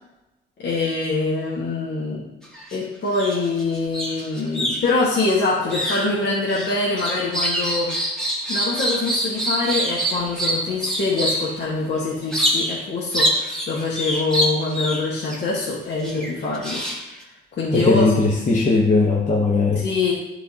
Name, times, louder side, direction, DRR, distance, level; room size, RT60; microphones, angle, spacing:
voice 1, 0.6-2.3 2.7-7.9 8.5-16.8 17.5-18.0 19.8-20.1, left 3 dB, 60° left, -5 dB, 1.5 m, -24 dB
sound 1, 2.4-2.8 3.1-11.5 12.3-12.8 13.1-15.4 16.0-17.2, equal, 5° left, 1.6 m, -25 dB
voice 2, 17.7-19.8, left 3 dB, 40° left, -3 dB, 1.2 m, -18 dB
10.5 x 4.0 x 2.9 m, 0.97 s
cardioid pair, 90°, 20 cm